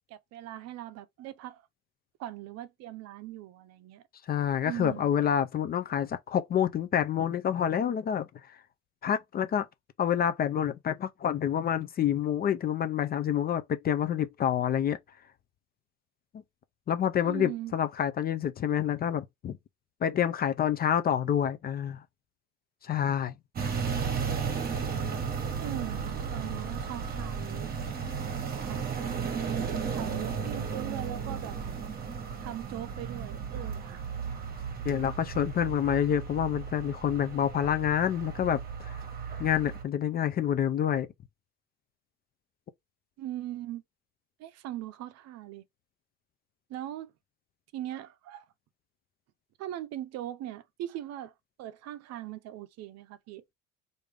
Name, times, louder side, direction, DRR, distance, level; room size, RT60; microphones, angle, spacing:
voice 1, 0.1-1.6 2.2-4.0 4.6-5.1 17.2-17.7 25.6-27.9 28.6-28.9 29.9-31.6 32.4-34.0 35.0-35.2 43.2-43.8 44.4-45.6 46.7-47.1 47.7-48.5 49.6-51.3 51.6-53.4, right 13 dB, 55° right, 0.6 m, -40 dB
voice 2, 4.3-8.3 9.0-9.7 10.0-15.0 16.9-19.6 20.0-22.0 22.8-23.3 34.8-39.0 39.4-41.1, left 9 dB, 30° left, 0.4 m, -28 dB
sound 1, 23.6-39.8, right 6 dB, 30° right, 1.1 m, -34 dB
3.3 x 2.6 x 3.3 m
supercardioid pair, 110°, 31 cm